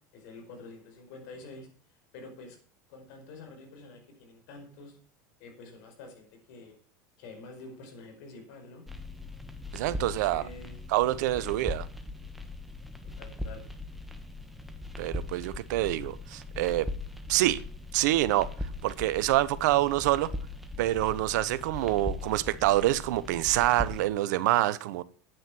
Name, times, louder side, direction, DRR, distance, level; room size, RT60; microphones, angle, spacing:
voice 1, 0.1-1.7 2.1-2.6 2.9-5.0 5.4-6.8 7.2-8.9 9.8-11.7 13.0-13.6, left 3 dB, 70° left, 5.0 m, -48 dB
sound 1, 8.9-24.0, left 2 dB, ahead, 1.6 m, -40 dB
voice 2, 9.7-10.4 10.9-11.9 15.0-16.9 17.3-17.6 17.9-18.5 18.8-20.3 20.8-25.0, right 15 dB, 75° right, 0.9 m, -26 dB
9.5 x 9.1 x 6.1 m
hypercardioid pair, 95°, 10 cm